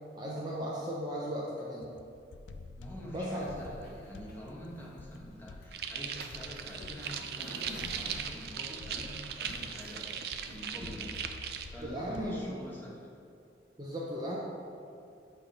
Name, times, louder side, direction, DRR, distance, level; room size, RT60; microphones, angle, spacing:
voice 1, 0.1-1.9 3.1-3.4 11.8-12.6 13.8-14.4, equal, 20° right, -4 dB, 0.7 m, -36 dB
sound 1, 1.8-12.5, left 3 dB, 80° left, 0.4 m, -50 dB
voice 2, 2.8-10.1 10.5-11.1 11.7-13.1, equal, 10° left, -6 dB, 1.1 m, -46 dB
sound 2, 3.3-10.6, left 1 dB, 50° left, 1.1 m, -52 dB
sound 3, 5.7-11.7, right 8 dB, 55° right, 0.4 m, -39 dB
8.3 x 3.3 x 5.1 m, 2.5 s
head